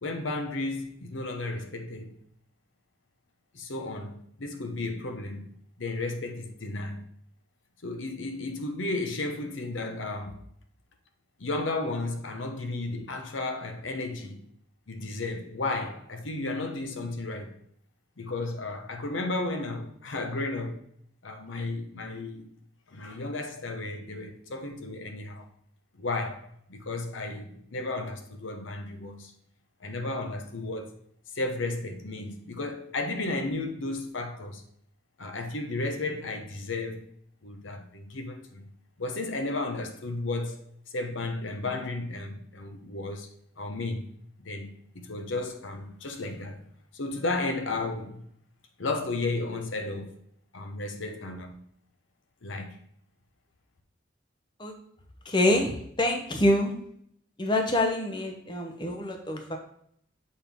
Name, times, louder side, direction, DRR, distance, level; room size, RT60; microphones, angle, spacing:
voice 1, 0.0-2.2 3.5-5.5 5.8-7.0 7.8-10.4 11.4-14.4 14.9-17.6 18.2-20.8 21.2-22.5 22.9-25.5 26.0-29.3 29.8-30.9 31.3-34.6 35.2-37.1 37.4-38.7 39.0-43.3 43.6-44.1 44.4-46.6 46.9-48.2 48.8-50.1 50.5-51.6 52.4-52.8, left 2 dB, 90° left, 0.9 m, -33 dB
voice 2, 55.3-56.7 57.4-59.6, left 1 dB, 25° left, 0.7 m, -26 dB
7.1 x 4.3 x 3.5 m
head